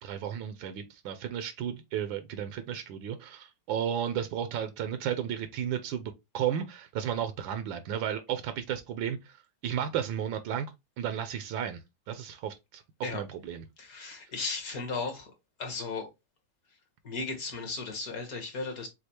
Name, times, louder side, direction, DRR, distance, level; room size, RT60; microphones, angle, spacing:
voice 1, 0.0-9.4 9.6-10.7 11.0-11.8 12.1-13.6, right 9 dB, 80° right, 1.4 m, -33 dB
voice 2, 13.8-15.3 15.6-16.1 17.0-18.9, left 3 dB, 50° left, 1.7 m, -35 dB
6.6 x 2.3 x 2.9 m
omnidirectional pair, 2.1 m